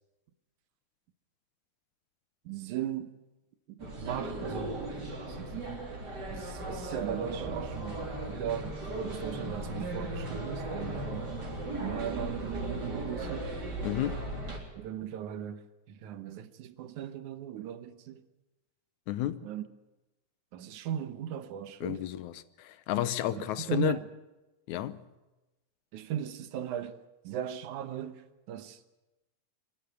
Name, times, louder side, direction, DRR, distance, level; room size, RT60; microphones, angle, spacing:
voice 1, 2.5-3.1 3.7-11.3 11.8-13.5 14.7-15.6 15.9-18.2 19.4-19.6 20.5-22.0 23.3-24.1 25.9-27.0 27.2-28.8, right 10 dB, 80° right, 2.4 m, -38 dB
sound 1, 3.8-14.6, right 2 dB, 35° right, 4.1 m, -37 dB
voice 2, 13.8-14.3 19.1-19.5 21.8-24.0 24.7-25.0, left 13 dB, 75° left, 2.2 m, -32 dB
24.5 x 13.5 x 9.4 m
omnidirectional pair, 3.5 m